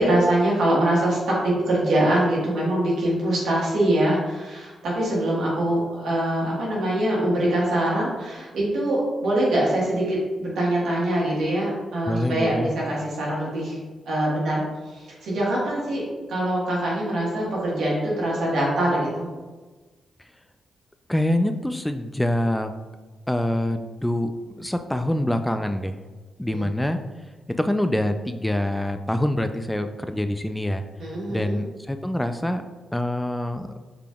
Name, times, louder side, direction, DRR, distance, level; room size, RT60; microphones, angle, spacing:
voice 1, 0.0-13.8 14.1-14.6 14.9-16.0 16.3-19.3 26.5-26.7 31.0-31.6, right 1 dB, 80° right, -5 dB, 1.4 m, -23 dB
voice 2, 12.1-12.7 21.1-22.7 23.3-24.3 24.6-26.0 26.4-27.0 27.6-30.8 31.3-32.6 32.9-33.7, left 1 dB, 10° left, 8 dB, 0.3 m, -25 dB
5.0 x 3.3 x 2.3 m, 1.3 s
supercardioid pair, 50°, 0 cm